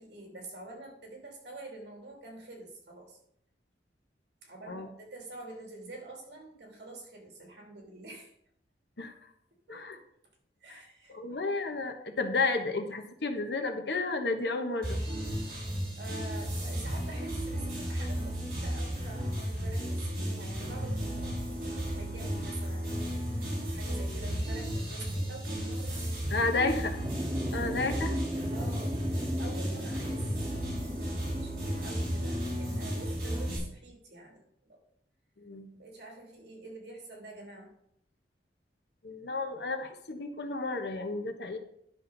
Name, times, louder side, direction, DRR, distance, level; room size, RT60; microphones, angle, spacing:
voice 1, 0.0-3.2 4.4-8.3 9.7-9.9 10.6-11.4 16.0-23.1 23.7-26.1 28.5-29.0 29.4-30.3 30.6-34.8 35.7-37.7, right 2 dB, 70° right, 0 dB, 2.9 m, -47 dB
voice 2, 11.1-15.0 26.3-27.0 27.5-28.2 35.4-35.7 39.0-41.6, left 3 dB, 70° left, 6 dB, 1.1 m, -32 dB
sound 1, 14.8-33.6, equal, 55° right, 4.2 m, -34 dB
sound 2, 16.7-32.7, equal, 10° left, 3.2 m, -51 dB
sound 3, 27.0-32.6, equal, 15° right, 0.6 m, -38 dB
11.0 x 6.3 x 4.0 m, 0.73 s
head